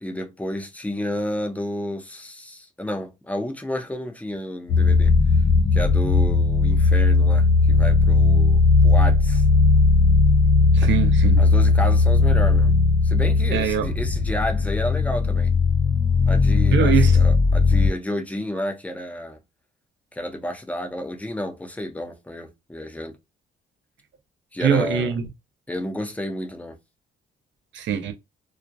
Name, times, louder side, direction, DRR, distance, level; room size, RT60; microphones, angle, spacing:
voice 1, 0.0-5.1 5.7-9.4 10.8-11.0 11.4-12.8 13.0-15.5 16.3-19.4 20.1-23.2 24.5-25.1 25.7-26.8, left 1 dB, 5° left, 0.6 m, -31 dB
sound 1, 4.7-17.9, left 4 dB, 45° left, 1.0 m, -17 dB
voice 2, 10.7-11.4 13.5-13.9 16.7-17.2 24.6-25.2 27.7-28.1, right 8 dB, 65° right, 0.6 m, -22 dB
2.4 x 2.0 x 2.6 m
cardioid pair, 90°, 20 cm